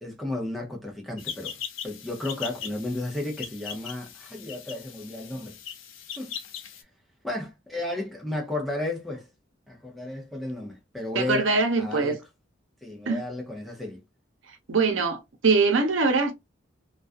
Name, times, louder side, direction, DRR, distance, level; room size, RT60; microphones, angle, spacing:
voice 1, 0.0-5.6 6.2-6.3 7.2-9.3 9.7-11.5 11.8-12.2 12.8-14.0, left 1 dB, ahead, 0.5 m, -33 dB
sound 1, 1.2-6.8, left 8 dB, 85° left, 0.5 m, -39 dB
voice 2, 11.1-12.2 13.1-13.2 14.7-16.3, right 4 dB, 80° right, 0.7 m, -23 dB
2.3 x 2.3 x 2.4 m
head